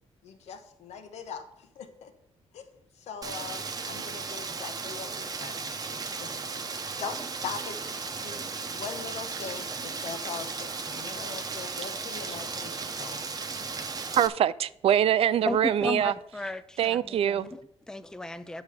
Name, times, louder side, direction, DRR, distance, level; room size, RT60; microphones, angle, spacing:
voice 1, 0.2-2.1 2.5-2.7 2.9-5.6 5.9-6.4 7.0-13.3, left 6 dB, 80° left, 1.1 m, -41 dB
Rain, 3.2-14.3, right 4 dB, 35° right, 0.8 m, -36 dB
voice 2, 14.2-16.1 16.8-17.5, right 10 dB, 60° right, 0.4 m, -24 dB
voice 3, 15.4-18.6, left 2 dB, 5° left, 0.5 m, -35 dB
8.4 x 6.1 x 4.9 m
cardioid pair, 110°, 11 cm